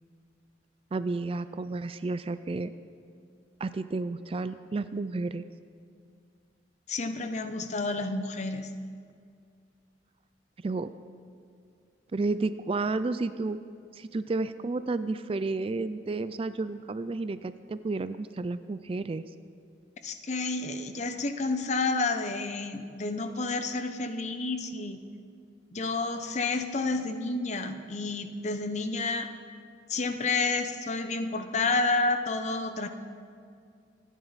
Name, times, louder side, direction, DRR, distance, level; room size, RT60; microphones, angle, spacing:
voice 1, 0.9-2.7 3.6-5.4 10.6-10.9 12.1-13.6 13.9-19.2, right 3 dB, 30° right, 13 dB, 0.3 m, -31 dB
voice 2, 6.9-8.7 20.0-25.0 25.7-29.3 29.9-32.9, left 3 dB, 40° left, 8 dB, 0.8 m, -30 dB
26.5 x 10.0 x 4.1 m, 2.3 s
head